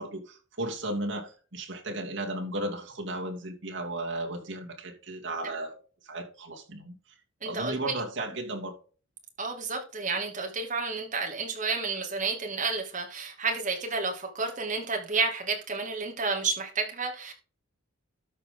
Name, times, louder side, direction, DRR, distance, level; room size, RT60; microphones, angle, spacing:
voice 1, 0.0-5.8 6.0-7.0 7.4-8.7, right 1 dB, 65° right, 2.7 m, -35 dB
voice 2, 7.4-8.0 9.4-17.3, right 4 dB, 35° right, 2.5 m, -31 dB
13.0 x 5.3 x 3.8 m
head